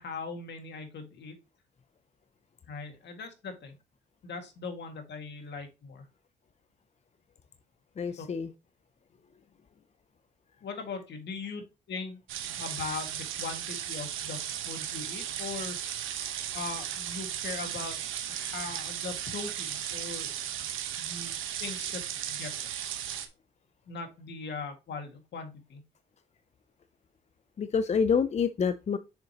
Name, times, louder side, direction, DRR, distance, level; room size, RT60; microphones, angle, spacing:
voice 1, 0.0-1.4 2.7-3.7 4.2-6.0 8.2-8.3 10.6-15.8 16.5-18.0 18.3-20.3 21.0-21.3 21.6-22.0 22.3-22.5 23.9-25.8, left 4 dB, 60° left, 2.0 m, -40 dB
voice 2, 8.0-8.5 27.6-29.0, left 6 dB, 35° left, 0.5 m, -27 dB
sound 1, 12.3-23.3, right 10 dB, 85° right, 1.1 m, -36 dB
6.7 x 6.5 x 2.9 m
cardioid pair, 90°, 20 cm